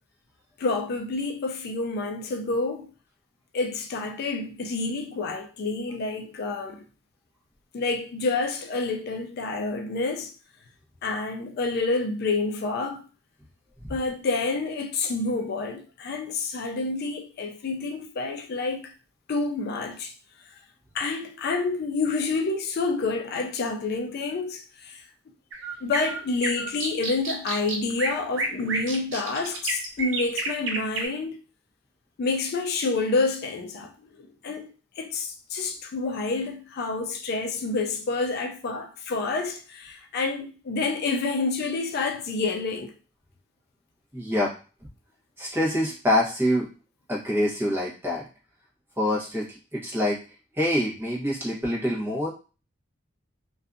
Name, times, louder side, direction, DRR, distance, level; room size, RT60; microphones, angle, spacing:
voice 1, 0.6-2.9 3.5-6.8 7.7-10.3 11.0-13.0 13.9-18.9 19.3-20.1 20.9-25.0 25.8-31.4 32.2-33.9 34.2-34.7 35.0-42.9, left 3 dB, 55° left, 0.3 m, -28 dB
sound 1, 25.5-31.1, right 2 dB, 80° right, 0.6 m, -30 dB
voice 2, 44.1-44.5 45.4-46.7 47.1-48.2 49.0-49.5 49.7-50.2 50.5-52.3, left 1 dB, 10° right, 0.9 m, -25 dB
2.6 x 2.2 x 2.5 m
head